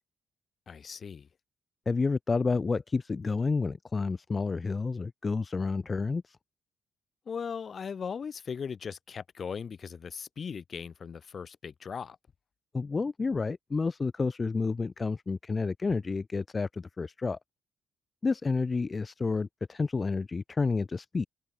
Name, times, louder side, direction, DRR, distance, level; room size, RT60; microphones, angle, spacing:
voice 1, 0.7-1.3 7.3-12.2, left 6 dB, 45° left, 3.7 m, -38 dB
voice 2, 1.9-6.4 12.7-17.4 18.2-21.3, left 4 dB, 30° left, 0.7 m, -30 dB
cardioid pair, 90°, 0 cm